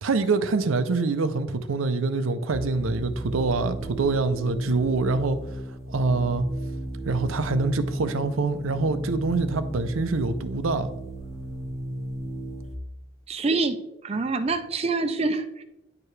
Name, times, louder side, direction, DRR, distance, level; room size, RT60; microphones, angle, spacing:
voice 1, 0.0-5.4 5.9-6.4 7.1-10.9, right 3 dB, 90° right, 10 dB, 0.6 m, -25 dB
sound 1, 2.5-12.7, right 1 dB, 15° right, 1.1 m, -34 dB
voice 2, 13.3-13.8 14.0-15.6, right 3 dB, 30° right, 8 dB, 0.5 m, -26 dB
9.6 x 4.7 x 3.3 m, 0.90 s
head